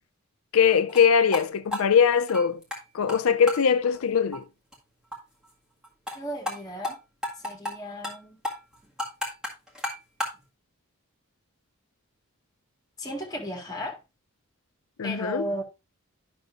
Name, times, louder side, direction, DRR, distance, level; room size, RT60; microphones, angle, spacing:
voice 1, 0.5-2.6 2.9-4.4 15.0-15.5, left 7 dB, 75° left, 0.5 m, -21 dB
sound 1, 0.9-1.0 1.3-1.4 1.7-2.8 3.1-3.2 3.5-3.6 3.9-4.0 4.3-4.4 4.7-4.8 5.1-5.2 5.4-5.5 5.8-6.2 6.5-6.6 6.8-6.9 7.2-7.7 8.0-8.2 8.4-10.4, left 1 dB, 5° right, 1.8 m, -32 dB
voice 2, 6.1-7.0 7.4-8.4 13.0-14.0 15.0-15.6, equal, 15° left, 1.7 m, -34 dB
11.5 x 5.9 x 2.5 m
head